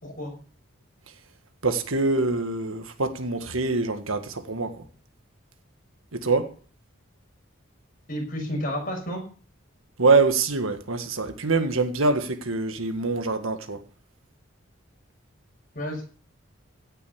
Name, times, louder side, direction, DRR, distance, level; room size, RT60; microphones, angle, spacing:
voice 1, 0.0-0.3 8.1-9.2 15.7-16.0, equal, 40° left, 6.2 m, -31 dB
voice 2, 1.6-4.9 6.1-6.6 10.0-13.8, right 3 dB, 80° right, 1.7 m, -24 dB
16.5 x 6.7 x 7.2 m
head